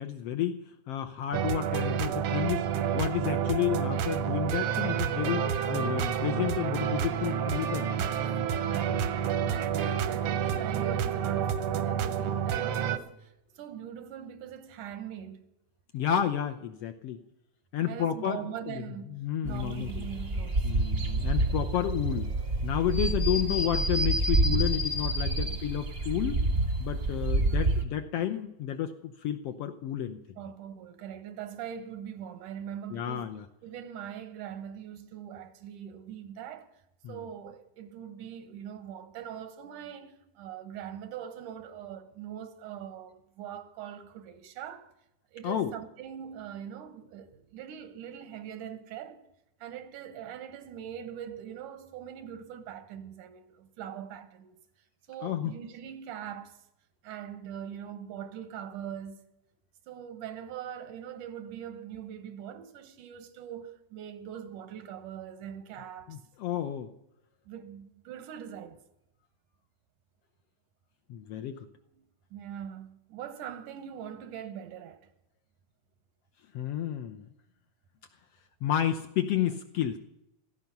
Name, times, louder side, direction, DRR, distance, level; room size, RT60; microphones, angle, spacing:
voice 1, 0.0-2.6 2.9-5.4 5.7-7.9 8.9-9.2 9.4-9.6 15.9-17.2 17.7-18.8 19.1-20.1 20.6-22.3 22.6-26.4 26.8-30.2 32.9-33.4 37.0-37.2 45.4-45.7 55.2-55.5 66.1-66.9 71.1-71.6 76.5-77.3 78.6-80.0, left 10 dB, 70° left, 1.5 m, -31 dB
sound 1, 1.3-13.0, right 8 dB, 70° right, 1.4 m, -29 dB
voice 2, 2.3-2.8 7.9-8.2 8.6-9.0 9.5-15.5 17.9-20.7 25.4-25.7 30.4-33.3 33.6-36.8 37.1-44.9 45.3-49.3 49.6-54.6 55.1-56.6 57.0-59.3 59.9-66.2 67.5-68.8 71.9-72.1 72.3-75.1, right 9 dB, 90° right, 2.7 m, -42 dB
sound 2, 19.4-27.8, right 2 dB, 40° right, 0.9 m, -28 dB
16.0 x 13.5 x 5.9 m
omnidirectional pair, 3.5 m